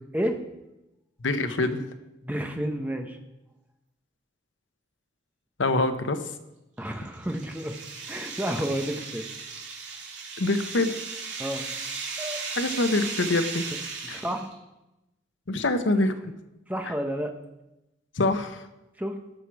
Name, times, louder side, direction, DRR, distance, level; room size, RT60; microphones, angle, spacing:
voice 1, 1.2-1.8 5.6-6.3 10.4-11.0 12.6-13.7 14.1-14.2 15.5-16.3 18.1-18.7, left 2 dB, 85° left, 8 dB, 0.9 m, -25 dB
voice 2, 2.2-3.2 6.8-7.8 8.1-9.3 11.4-11.7 12.2-12.4 14.0-14.5 16.7-17.3 19.0-19.2, equal, 10° right, 4 dB, 0.9 m, -30 dB
sound 1, 6.8-14.5, right 5 dB, 75° right, 2.6 m, -36 dB
17.5 x 6.2 x 4.7 m, 0.96 s
head